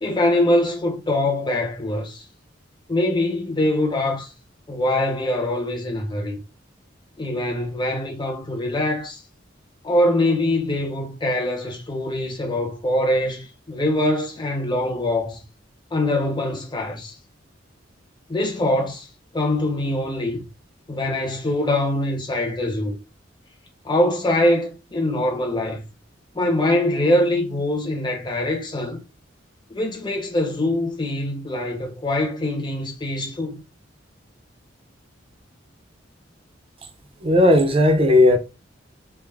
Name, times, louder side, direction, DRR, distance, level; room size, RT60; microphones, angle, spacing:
voice 1, 0.0-2.2 2.9-4.3 4.7-6.4 7.2-9.2 9.8-15.4 15.9-17.2 18.3-19.1 19.3-20.4 20.9-23.0 23.8-25.8 26.3-29.0 29.7-33.6, left 1 dB, 25° left, 0.8 m, -23 dB
voice 2, 37.2-38.4, left 1 dB, 30° right, 0.5 m, -15 dB
3.4 x 2.0 x 3.4 m
head